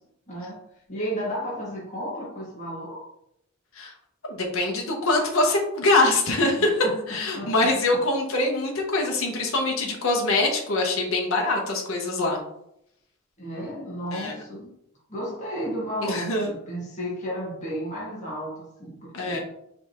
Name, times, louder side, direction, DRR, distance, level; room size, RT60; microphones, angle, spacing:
voice 1, 0.3-3.0 6.3-7.6 13.4-14.7 15.1-19.4, equal, 35° left, -7 dB, 1.6 m, -33 dB
voice 2, 4.2-6.7 7.1-12.4 14.1-14.3 16.0-16.5 19.1-19.4, left 2 dB, 80° left, 1 dB, 0.9 m, -24 dB
5.2 x 3.4 x 3.0 m, 0.77 s
head